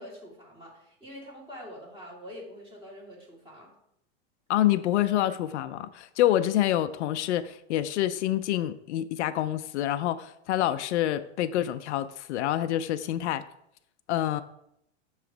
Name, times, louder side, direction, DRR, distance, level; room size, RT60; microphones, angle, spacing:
voice 1, 0.0-3.7, equal, 15° right, -4 dB, 2.4 m, -45 dB
voice 2, 4.5-13.4 14.1-14.4, left 13 dB, 75° left, 12 dB, 0.5 m, -27 dB
6.7 x 3.1 x 4.9 m, 0.76 s
hypercardioid pair, 125°, 35 cm